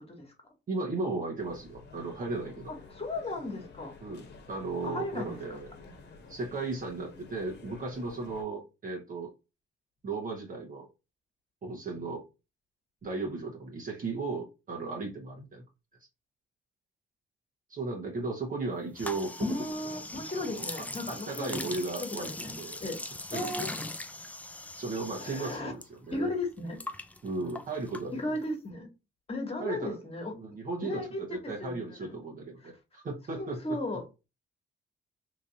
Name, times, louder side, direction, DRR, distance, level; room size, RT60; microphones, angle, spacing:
voice 1, 0.7-2.7 4.0-5.7 6.3-9.3 10.0-10.9 11.6-12.2 13.0-15.6 17.7-19.6 20.3-22.8 23.3-23.7 24.8-26.3 27.2-28.4 29.6-30.0 30.3-33.8, right 3 dB, 45° right, 1.1 m, -36 dB
sound 1, 1.4-8.4, left 4 dB, 60° left, 1.0 m, -50 dB
voice 2, 3.0-3.9 4.8-5.3 19.4-21.7 22.0-23.0 23.3-23.7 25.2-25.7 26.1-26.8 28.2-28.9 29.3-30.3 30.8-31.2 31.6-31.8 33.4-34.0, left 2 dB, 30° left, 1.4 m, -35 dB
sound 2, 18.9-25.9 26.1-28.5, left 2 dB, 5° left, 0.4 m, -40 dB
3.0 x 2.6 x 3.9 m
cardioid pair, 90°, 20 cm